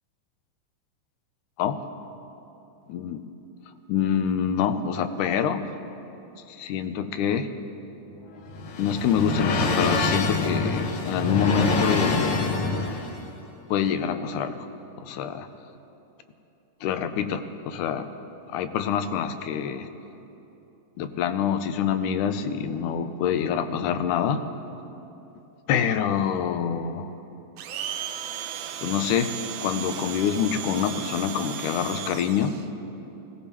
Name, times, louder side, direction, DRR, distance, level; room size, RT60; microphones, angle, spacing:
voice 1, 3.9-5.7 6.5-7.5 8.8-12.6 13.7-14.7 15.0-15.5 16.8-18.1 18.5-19.9 21.0-24.4 25.7-27.1 28.8-29.3 29.6-32.5, left 8 dB, 85° left, 9 dB, 2.2 m, -26 dB
sound 1, 8.1-13.2, left 3 dB, 65° left, 1.5 m, -26 dB
Domestic sounds home sounds, 27.6-32.7, right 9 dB, 80° right, 1.4 m, -35 dB
20.5 x 17.0 x 3.0 m, 2.9 s
omnidirectional pair, 3.5 m